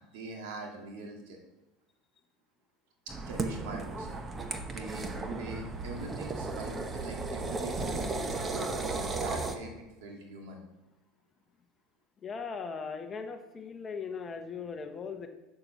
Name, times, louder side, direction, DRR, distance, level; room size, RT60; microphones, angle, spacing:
voice 1, 0.0-1.4 3.1-4.2 4.6-10.6, right 2 dB, 75° right, 1 dB, 2.0 m, -43 dB
sound 1, 3.1-9.6, right 3 dB, 20° right, 0.8 m, -35 dB
voice 2, 12.2-15.3, left 5 dB, 25° left, 6 dB, 1.0 m, -39 dB
6.9 x 6.8 x 5.9 m, 1.0 s
supercardioid pair, 125°, 0 cm